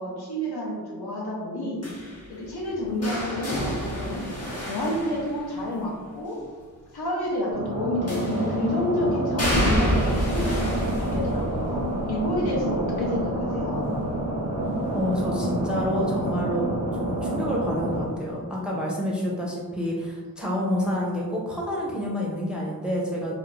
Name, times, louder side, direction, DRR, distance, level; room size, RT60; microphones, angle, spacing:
voice 1, 0.0-1.8 2.3-4.3 4.6-6.4 6.9-11.8 12.1-13.9, left 1 dB, 80° left, -4 dB, 0.7 m, -29 dB
sound 1, 1.8-5.9 8.1-8.7 9.4-15.2 15.5-15.9 17.2-17.3, equal, 40° left, 0.9 m, -30 dB
sound 2, 7.5-18.0, right 1 dB, 85° right, 0.5 m, -28 dB
voice 2, 14.9-23.3, equal, 5° right, -3 dB, 0.4 m, -28 dB
2.4 x 2.0 x 3.0 m, 1.5 s
wide cardioid pair, 75°, 38 cm